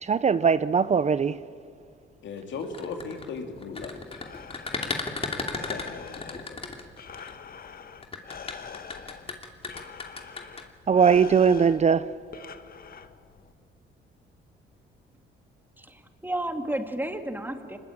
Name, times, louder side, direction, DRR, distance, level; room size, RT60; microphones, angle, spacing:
voice 1, 0.0-1.4 10.9-12.1, right 6 dB, 35° right, 0.6 m, -20 dB
voice 2, 2.2-4.0 5.5-6.7, left 4 dB, 65° left, 3.0 m, -38 dB
sound 1, 2.6-7.3 8.0-10.6, left 3 dB, 30° left, 2.8 m, -34 dB
Breathing, 3.9-13.5, left 6 dB, 50° left, 1.3 m, -45 dB
voice 3, 15.8-17.8, right 1 dB, 10° right, 2.2 m, -32 dB
25.0 x 21.0 x 8.8 m
cardioid pair, 90°, 20 cm